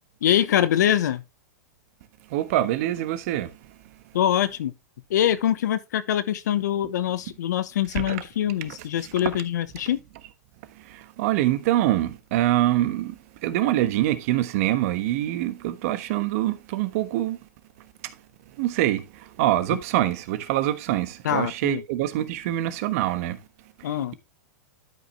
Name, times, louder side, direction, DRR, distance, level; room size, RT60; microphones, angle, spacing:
voice 1, 0.2-1.2 4.1-4.7 5.1-10.0 21.2-21.8 23.8-24.1, left 11 dB, 75° left, 1.1 m, -24 dB
voice 2, 2.3-3.7 7.9-8.2 9.0-9.1 9.8-9.9 10.7-17.4 18.0-18.1 18.6-23.4 23.8-24.1, right 14 dB, 55° right, 1.3 m, -25 dB
12.0 x 5.3 x 3.3 m
hypercardioid pair, 130°, 9 cm